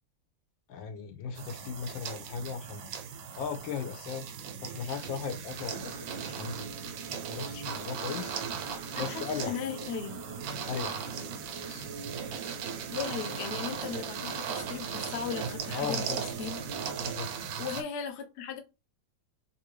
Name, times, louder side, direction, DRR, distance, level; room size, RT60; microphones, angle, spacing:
voice 1, 0.7-2.9 3.3-4.3 4.6-6.7 7.3-8.3 9.0-9.6 10.7-11.1 11.6-11.9 15.7-16.2 17.0-17.3, left 6 dB, 85° left, 1.4 m, -37 dB
sound 1, 1.4-17.8, right 7 dB, 85° right, 1.4 m, -38 dB
sound 2, 5.7-17.1, right 4 dB, 70° right, 1.0 m, -45 dB
voice 2, 8.9-10.2 12.9-16.9 17.6-18.6, left 7 dB, 65° left, 0.6 m, -37 dB
3.3 x 2.7 x 3.0 m
omnidirectional pair, 2.0 m